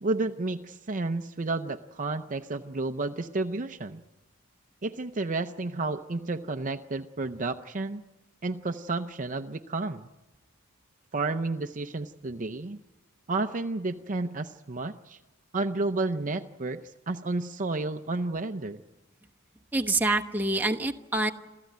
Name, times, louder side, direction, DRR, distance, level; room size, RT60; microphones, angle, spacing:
voice 1, 0.0-4.0 4.8-8.0 8.4-10.1 11.1-12.8 13.3-15.2 15.5-18.8, right 3 dB, 40° right, 7 dB, 0.7 m, -31 dB
voice 2, 19.7-21.3, right 2 dB, 10° right, 2 dB, 1.1 m, -26 dB
28.0 x 14.5 x 9.3 m, 1.1 s
head